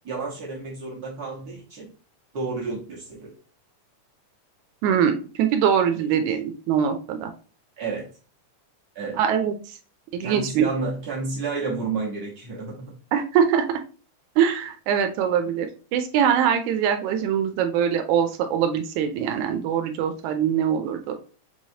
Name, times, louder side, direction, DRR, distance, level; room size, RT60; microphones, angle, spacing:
voice 1, 0.0-1.9 2.3-3.3 6.0-6.1 7.8-8.0 8.9-9.2 10.2-12.9, right 4 dB, 55° right, -3 dB, 1.0 m, -31 dB
voice 2, 4.8-7.3 9.1-9.8 10.1-10.7 13.1-13.6 14.4-21.2, right 8 dB, 80° right, 6 dB, 1.9 m, -23 dB
6.0 x 3.1 x 2.7 m, 0.37 s
omnidirectional pair, 3.4 m